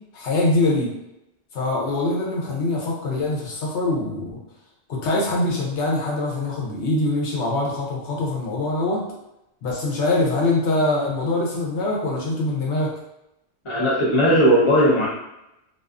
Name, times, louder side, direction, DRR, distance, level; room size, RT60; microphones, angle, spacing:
voice 1, 0.1-0.9 1.5-4.4 4.9-9.0 9.6-12.9, left 2 dB, 85° left, -3 dB, 1.0 m, -23 dB
voice 2, 13.6-15.1, equal, 30° left, -6 dB, 0.7 m, -17 dB
2.4 x 2.4 x 2.4 m, 0.87 s
omnidirectional pair, 1.1 m